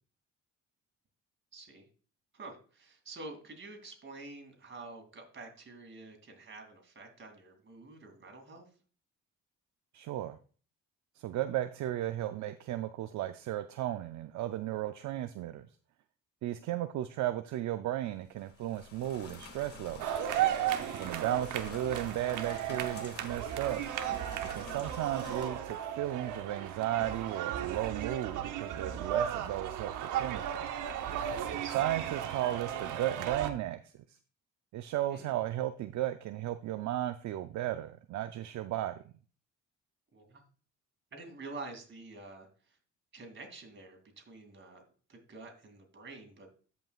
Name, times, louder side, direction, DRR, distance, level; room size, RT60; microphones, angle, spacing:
voice 1, 1.5-1.9 2.3-8.6 21.1-21.4 24.7-25.0 31.4-31.9 35.1-35.4 40.1-40.4 41.1-42.8 43.1-44.8 45.1-46.5, right 3 dB, 40° right, 3 dB, 2.6 m, -48 dB
voice 2, 9.9-10.4 11.2-15.7 16.4-20.1 20.9-23.8 24.5-30.7 31.7-34.2 34.7-39.0, right 13 dB, 70° right, 9 dB, 0.5 m, -35 dB
sound 1, 18.2-25.5, left 3 dB, 50° left, 1.8 m, -49 dB
sound 2, 20.0-33.5, right 10 dB, 85° right, 0.9 m, -35 dB
13.5 x 5.5 x 2.4 m, 0.40 s
cardioid pair, 90°, 30 cm